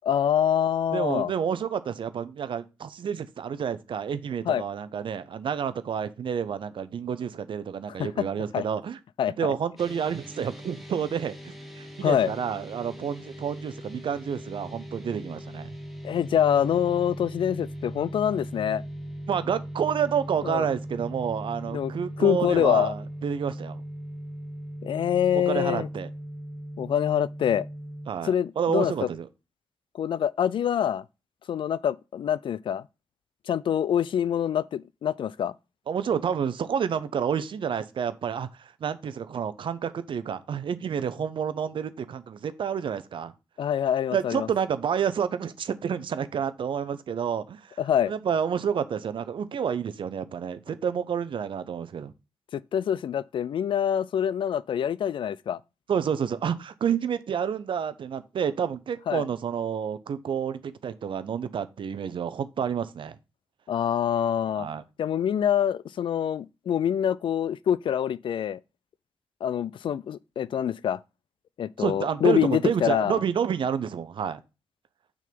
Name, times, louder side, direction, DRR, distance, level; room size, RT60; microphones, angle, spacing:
voice 1, 0.0-1.3 4.5-4.6 7.9-8.3 8.5-8.6 9.2-9.3 12.0-12.3 16.0-18.8 20.4-20.6 21.7-21.9 22.2-22.9 24.8-25.9 26.8-27.6 28.2-29.1 29.9-31.0 31.5-32.8 33.5-35.5 43.6-44.5 47.8-48.1 52.5-55.6 59.1-59.2 63.7-64.7 65.0-68.6 69.4-71.0 71.6-73.2, left 9 dB, 70° left, 0.4 m, -25 dB
voice 2, 0.9-9.0 9.4-15.7 19.3-23.8 25.5-26.1 28.1-29.3 35.9-43.3 44.1-47.8 48.1-52.1 55.9-63.2 64.5-64.8 71.8-74.4, right 7 dB, 70° right, 0.7 m, -29 dB
sound 1, 9.8-28.1, right 1 dB, ahead, 2.1 m, -39 dB
6.4 x 3.8 x 5.2 m
supercardioid pair, 40°, 9 cm